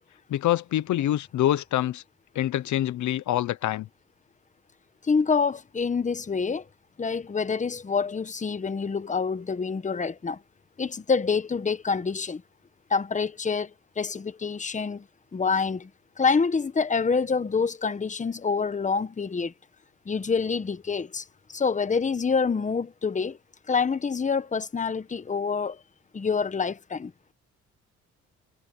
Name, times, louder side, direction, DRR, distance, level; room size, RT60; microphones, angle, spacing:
voice 1, 0.3-2.0 2.3-3.9, left 13 dB, 70° left, 0.9 m, -25 dB
voice 2, 5.1-6.6 7.0-10.4 10.8-12.4 12.9-13.7 14.0-15.0 15.3-15.9 16.2-19.5 20.1-21.2 21.5-23.4 23.7-25.8 26.1-27.1, left 5 dB, 25° left, 1.2 m, -26 dB
cardioid pair, 90°, 30 cm